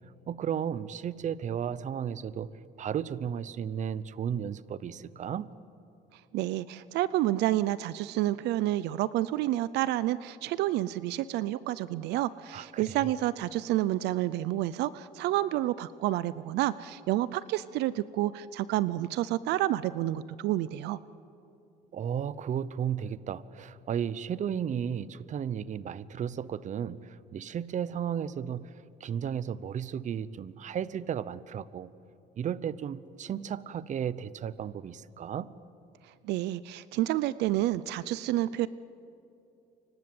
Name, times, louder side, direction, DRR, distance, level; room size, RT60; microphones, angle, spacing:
voice 1, 0.3-2.5 2.8-5.5 12.5-13.1 21.9-31.9 32.4-35.5, right 8 dB, 45° right, 17 dB, 0.9 m, -34 dB
voice 2, 6.3-21.0 36.2-38.7, right 15 dB, 85° right, 17 dB, 0.6 m, -29 dB
29.5 x 25.0 x 7.9 m, 2.8 s
cardioid pair, 110°, 17 cm